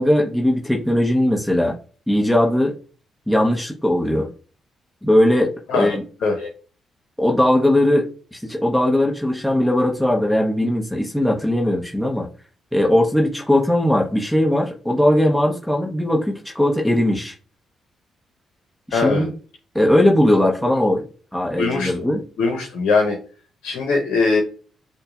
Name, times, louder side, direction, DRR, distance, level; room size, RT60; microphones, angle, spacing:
voice 1, 0.0-1.8 2.1-2.7 3.3-4.3 5.0-6.0 7.2-12.3 12.7-17.3 18.9-19.3 19.7-21.0 21.3-22.2, left 1 dB, 5° left, -1 dB, 0.9 m, -19 dB
voice 2, 18.9-19.3 21.6-23.2 23.6-24.4, left 4 dB, 75° left, 2 dB, 0.8 m, -21 dB
6.5 x 2.2 x 2.4 m, 0.38 s
supercardioid pair, 50°, 0 cm